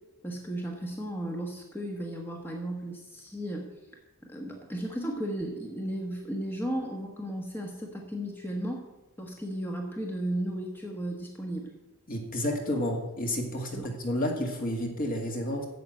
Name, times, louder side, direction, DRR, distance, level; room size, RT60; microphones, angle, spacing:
voice 1, 0.2-3.7 4.3-8.9 9.2-11.7 13.7-13.9, right 1 dB, 10° left, 0 dB, 1.3 m, -35 dB
voice 2, 12.1-15.7, left 1 dB, 40° left, 2 dB, 2.1 m, -30 dB
9.3 x 7.8 x 7.7 m, 1.0 s
head